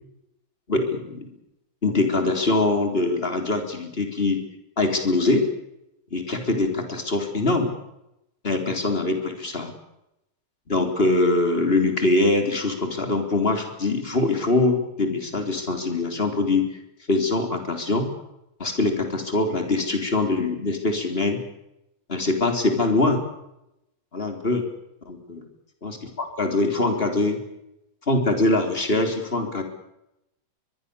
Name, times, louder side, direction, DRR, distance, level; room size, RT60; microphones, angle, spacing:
voice 1, 0.7-1.3 1.8-4.4 4.8-5.4 6.1-7.7 8.4-9.7 10.7-16.7 17.1-18.1 18.6-21.4 22.1-23.2 24.1-24.6 25.1-25.4 25.8-27.4 28.1-29.6, left 2 dB, 15° left, 5 dB, 3.6 m, -23 dB
23.0 x 22.5 x 7.0 m, 0.86 s
omnidirectional pair, 4.0 m